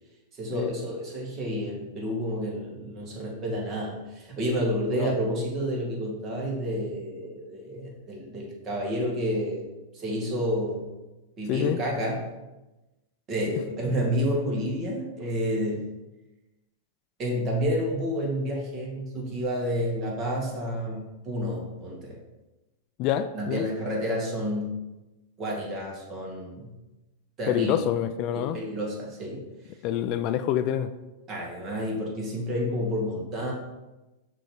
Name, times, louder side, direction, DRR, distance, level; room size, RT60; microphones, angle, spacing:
voice 1, 0.3-9.6 9.9-10.9 11.4-12.2 13.3-15.8 17.2-22.2 23.3-24.7 25.4-26.7 27.4-27.7 28.3-29.4 31.3-33.5, equal, 30° right, -2 dB, 2.1 m, -30 dB
voice 2, 23.0-23.6 27.5-28.6 29.8-30.9, left 11 dB, 45° left, 10 dB, 0.3 m, -27 dB
6.1 x 3.2 x 5.1 m, 1.1 s
hypercardioid pair, 115°, 0 cm